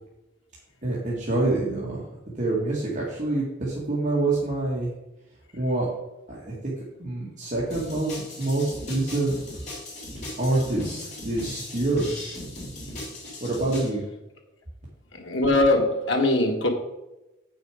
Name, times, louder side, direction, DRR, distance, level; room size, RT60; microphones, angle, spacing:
voice 1, 0.8-4.9 5.5-5.9 6.3-9.3 10.4-12.1 13.4-14.0, right 2 dB, 40° right, -6 dB, 1.9 m, -26 dB
sound 1, 7.7-13.9, left 1 dB, 40° left, 3.4 m, -38 dB
voice 2, 15.1-16.7, left 2 dB, 80° left, 2 dB, 1.6 m, -21 dB
8.3 x 6.4 x 5.0 m, 0.98 s
head